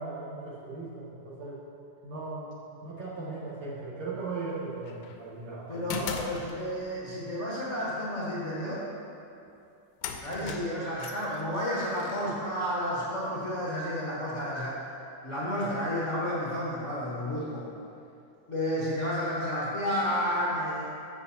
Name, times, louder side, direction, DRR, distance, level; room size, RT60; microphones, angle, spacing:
voice 1, 0.0-1.6 2.0-2.5 2.8-6.1 10.4-10.6, right 3 dB, 70° right, -8 dB, 2.4 m, -38 dB
sound 1, 4.8-5.2 5.9-7.0 9.5-9.6 10.0-13.0, left 5 dB, 85° left, 2.1 m, -39 dB
voice 2, 5.7-8.8 10.2-14.9 15.2-17.7 18.5-20.9, equal, 55° left, -8 dB, 0.8 m, -31 dB
12.5 x 7.7 x 2.8 m, 2.7 s
omnidirectional pair, 3.4 m